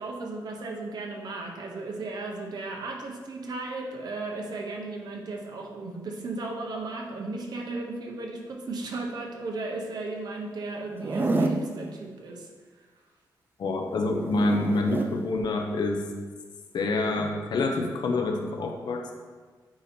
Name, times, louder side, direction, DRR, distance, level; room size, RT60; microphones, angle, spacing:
voice 1, 0.0-12.5, right 3 dB, 60° right, 1 dB, 0.9 m, -35 dB
Zipper (clothing), 10.9-11.7 13.8-15.1 17.0-17.3, right 2 dB, 25° right, 0.4 m, -29 dB
voice 2, 13.6-16.1 16.7-19.1, left 2 dB, 65° left, 3 dB, 0.7 m, -27 dB
8.6 x 2.9 x 4.3 m, 1.4 s
wide cardioid pair, 140°, 8 cm